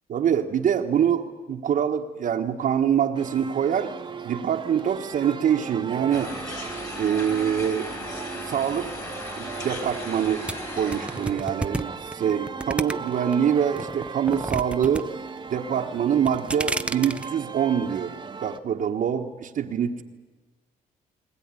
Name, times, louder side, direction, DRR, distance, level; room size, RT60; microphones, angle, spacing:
voice 1, 0.1-4.0 4.2-6.4 7.0-7.9 8.5-9.0 9.4-15.1 15.5-18.2 18.4-20.0, right 8 dB, 65° right, 2 dB, 1.3 m, -25 dB
sound 1, 3.1-18.6, right 5 dB, 30° right, 1.2 m, -37 dB
sound 2, 6.1-11.3, left 1 dB, 20° left, 4.7 m, -36 dB
sound 3, 10.5-13.3 13.8-15.0 15.3-15.8 16.2-17.3, right 2 dB, 10° right, 0.7 m, -30 dB
20.5 x 20.5 x 9.7 m, 1.3 s
cardioid pair, 110°, 15 cm